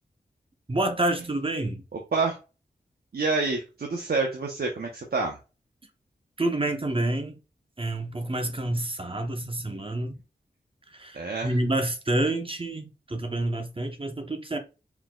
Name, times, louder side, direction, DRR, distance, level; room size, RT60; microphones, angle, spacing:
voice 1, 0.7-1.8 6.4-7.4 7.8-10.1 10.9-14.6, right 1 dB, 30° right, 0.8 m, -28 dB
voice 2, 1.9-2.4 3.1-5.4 11.1-11.6, right 3 dB, 60° right, 0.8 m, -28 dB
4.6 x 3.7 x 2.3 m
cardioid pair, 40°, 17 cm